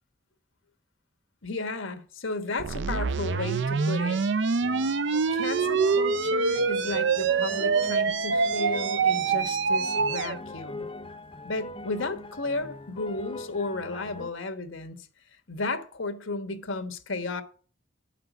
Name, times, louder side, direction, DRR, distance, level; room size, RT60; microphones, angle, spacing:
voice 1, 1.4-4.2 5.3-10.9 11.4-15.1 15.5-17.4, left 3 dB, 85° left, 1.4 m, -33 dB
sound 1, 2.6-10.4, right 5 dB, 65° right, 0.5 m, -25 dB
sound 2, 4.6-14.3, left 2 dB, 25° left, 0.6 m, -40 dB
9.1 x 5.8 x 8.0 m
head